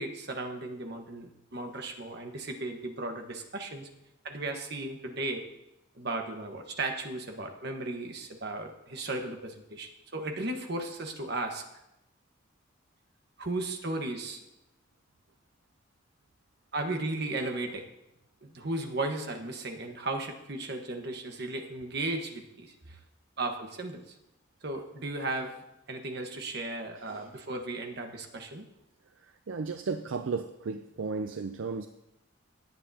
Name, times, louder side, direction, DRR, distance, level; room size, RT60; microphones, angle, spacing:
voice 1, 0.0-3.9 4.2-5.4 5.9-11.6 13.4-14.4 16.7-17.8 18.4-23.0 23.4-24.1 24.6-25.6 25.9-28.7, right 2 dB, 55° right, 4 dB, 1.4 m, -35 dB
voice 2, 29.2-31.9, right 4 dB, 70° right, 8 dB, 0.5 m, -34 dB
17.5 x 8.7 x 2.8 m, 0.88 s
head